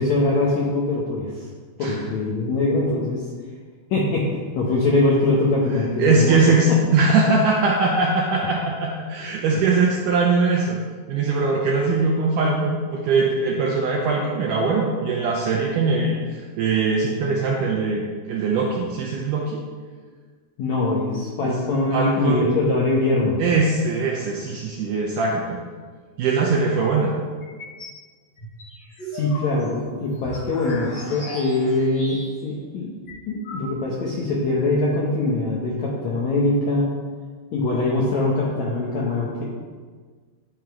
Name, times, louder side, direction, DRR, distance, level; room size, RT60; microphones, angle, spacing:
voice 1, 0.0-1.5 1.8-3.2 3.9-6.4 6.7-6.8 20.6-23.4 29.1-33.0 33.3-36.9 37.5-39.4, left 2 dB, 75° left, -4 dB, 1.7 m, -22 dB
voice 2, 6.0-10.8 11.1-18.0 18.3-19.6 21.4-21.5 21.9-22.5 23.4-25.6 26.2-27.1, right 3 dB, 80° right, -2 dB, 1.9 m, -21 dB
sound 1, 27.4-28.0 28.4-32.5 32.8-32.9 33.1-34.0, equal, 40° left, 1.9 m, -38 dB
11.0 x 3.8 x 4.6 m, 1.5 s
omnidirectional pair, 4.4 m